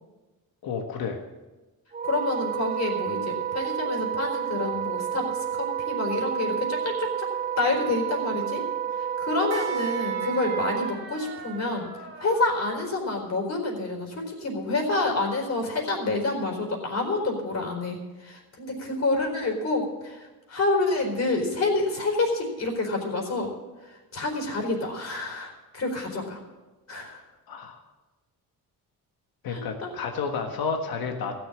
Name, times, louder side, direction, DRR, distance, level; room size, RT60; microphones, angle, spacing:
voice 1, 0.6-1.2 27.5-27.8 29.4-31.3, left 5 dB, 70° left, 4 dB, 1.6 m, -31 dB
Wind instrument woodwind instrument, 1.9-10.9, right 8 dB, 25° right, 0.5 m, -30 dB
voice 2, 2.0-7.3 7.6-8.6 8.9-11.9 12.2-23.5 23.8-26.4 26.9-27.2 29.5-29.9, left 2 dB, 45° left, 1 dB, 4.3 m, -28 dB
sound 1, 4.8-13.0, right 4 dB, 45° right, 2.5 m, -44 dB
16.0 x 7.1 x 8.6 m, 1.2 s
cardioid pair, 110°, 37 cm